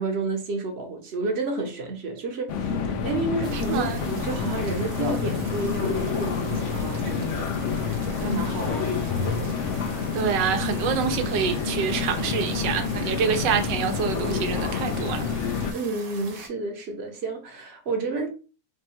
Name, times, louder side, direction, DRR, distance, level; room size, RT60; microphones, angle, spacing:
voice 1, 0.0-2.8 3.0-7.6 8.2-9.1 15.7-18.3, right 3 dB, 50° right, 0.9 m, -30 dB
sound 1, 2.5-15.7, left 5 dB, 75° left, 0.7 m, -28 dB
sound 2, 3.4-16.5, right 4 dB, 75° right, 1.5 m, -43 dB
voice 2, 3.5-4.0 10.1-15.3, right 7 dB, 90° right, 1.3 m, -26 dB
3.6 x 2.2 x 4.1 m
omnidirectional pair, 1.9 m